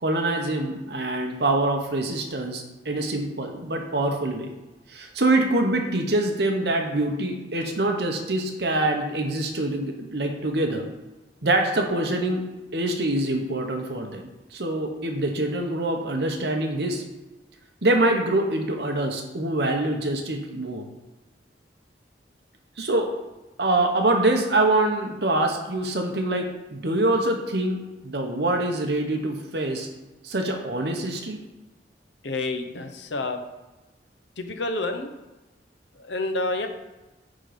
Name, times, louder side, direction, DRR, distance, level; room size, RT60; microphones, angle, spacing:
voice 1, 0.0-4.5 4.9-10.9 11.4-12.4 12.7-17.0 17.8-20.9 22.8-23.1 23.6-29.9 30.2-31.4, right 2 dB, 65° right, 3 dB, 1.1 m, -25 dB
voice 2, 32.2-33.4 34.4-35.1 36.0-36.7, left 2 dB, 85° left, 6 dB, 0.9 m, -28 dB
9.2 x 3.9 x 5.2 m, 1.1 s
head